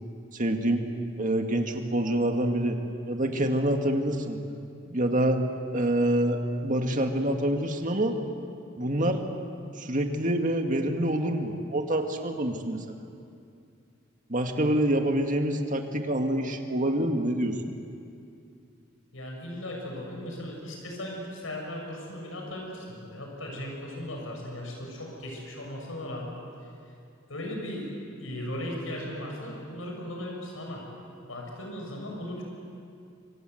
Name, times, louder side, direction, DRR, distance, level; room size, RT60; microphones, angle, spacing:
voice 1, 0.3-0.9 1.2-2.8 3.1-4.4 4.8-5.4 5.7-8.2 8.8-9.2 9.8-13.0 14.3-17.6, right 1 dB, 40° right, 4 dB, 2.1 m, -26 dB
voice 2, 19.1-26.3 27.3-27.9 28.2-30.8 31.3-32.4, left 1 dB, 85° left, 0 dB, 6.5 m, -37 dB
27.5 x 24.0 x 8.0 m, 2.5 s
head